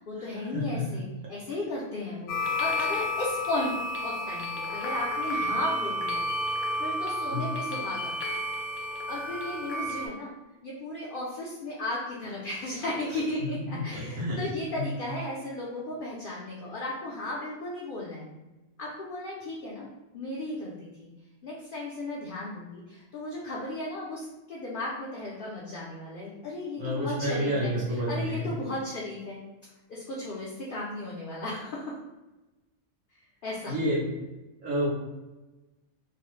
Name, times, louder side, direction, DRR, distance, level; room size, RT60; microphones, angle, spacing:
voice 1, 0.0-3.7 4.0-6.3 6.8-8.2 9.1-10.3 10.6-18.3 18.8-19.9 20.1-21.1 21.4-29.4 29.9-32.0 33.4-33.7, left 1 dB, 60° left, -5 dB, 0.6 m, -35 dB
voice 2, 0.5-0.9 7.3-7.4 13.7-14.4 14.8-14.9 26.8-28.5 33.7-34.0 34.6-34.9, equal, 90° right, -5 dB, 1.3 m, -29 dB
sound 1, 2.3-10.1, left 1 dB, 75° left, 0.9 m, -31 dB
3.0 x 2.0 x 3.0 m, 1.1 s
omnidirectional pair, 1.3 m